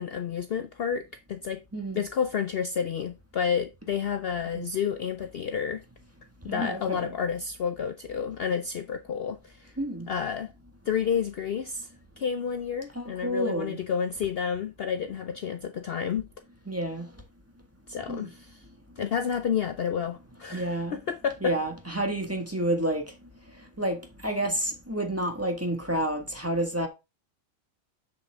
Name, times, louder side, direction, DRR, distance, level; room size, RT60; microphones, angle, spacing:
voice 1, 0.0-1.6 1.9-5.8 6.4-9.7 10.1-10.5 10.9-11.9 12.2-16.3 17.9-18.6 19.0-21.5, left 7 dB, 55° left, 0.8 m, -30 dB
voice 2, 6.5-7.1 9.8-10.1 12.9-13.8 16.7-17.1 18.0-18.3 20.5-21.0 21.4-23.0 23.8-26.9, right 1 dB, 10° right, 1.7 m, -29 dB
7.0 x 6.8 x 3.6 m
omnidirectional pair, 1.4 m